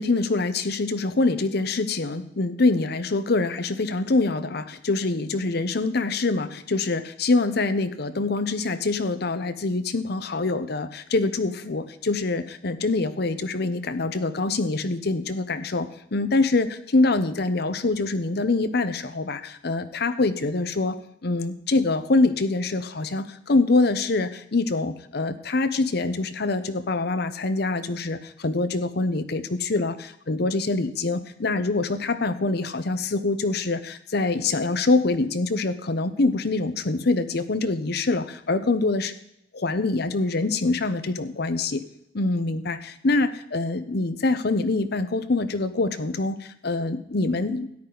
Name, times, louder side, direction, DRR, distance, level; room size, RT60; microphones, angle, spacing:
voice 1, 0.0-21.0 21.2-29.9 30.3-39.1 39.5-41.8 42.1-47.7, left 3 dB, 60° left, 11 dB, 0.8 m, -25 dB
13.5 x 10.0 x 4.0 m, 0.77 s
head